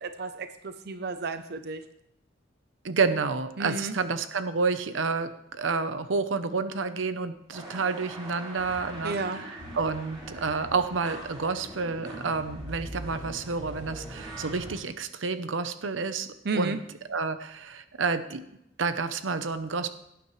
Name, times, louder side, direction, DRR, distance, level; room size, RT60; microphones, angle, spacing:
voice 1, 0.0-1.8 3.6-3.9 9.0-9.4 16.4-16.8, right 3 dB, 60° right, 9 dB, 0.7 m, -32 dB
voice 2, 2.8-9.5 9.7-16.3 16.5-16.8 17.1-18.5 18.8-19.9, right 4 dB, 90° right, 11 dB, 0.8 m, -29 dB
sound 1, 7.5-14.7, right 1 dB, 25° right, 5.5 m, -41 dB
17.5 x 9.2 x 3.2 m, 0.80 s
head